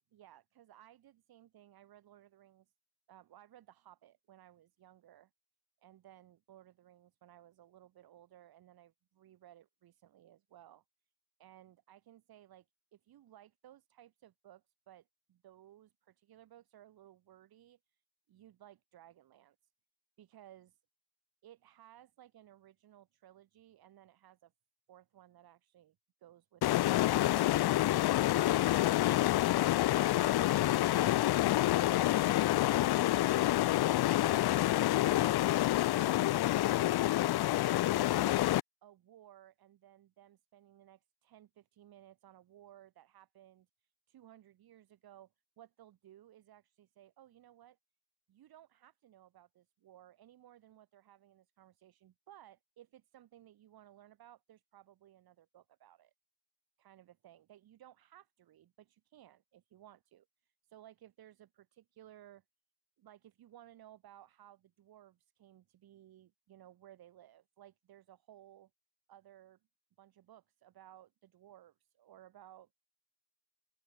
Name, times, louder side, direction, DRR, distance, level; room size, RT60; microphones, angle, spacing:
voice 1, 0.0-2.7 3.1-5.3 5.8-10.8 11.4-12.7 12.9-18.0 18.3-19.6 20.2-20.7 21.4-24.5 24.9-26.0 26.2-29.2 29.9-32.9 33.2-38.4 38.8-43.7 44.1-47.8 48.3-56.1 56.8-62.4 63.0-68.7 69.1-69.6 70.0-72.7, right 12 dB, 50° right, 7.3 m, -59 dB
sound 1, 26.6-38.6, left 15 dB, 50° left, 1.5 m, -28 dB
open air
cardioid pair, 165°, 47 cm